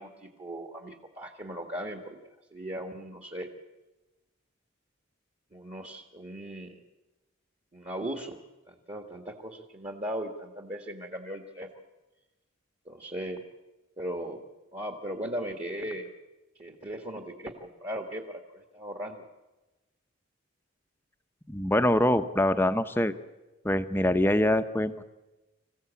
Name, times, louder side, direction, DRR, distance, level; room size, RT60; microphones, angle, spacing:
voice 1, 0.0-2.2 2.5-3.5 5.5-6.8 7.7-8.4 8.7-11.7 12.8-13.4 14.0-14.4 14.7-16.1 16.6-19.2, right 1 dB, 30° right, 3 dB, 1.7 m, -38 dB
voice 2, 21.5-23.1 23.6-25.0, left 1 dB, 10° left, 9 dB, 0.8 m, -24 dB
26.0 x 15.5 x 8.4 m, 1.1 s
head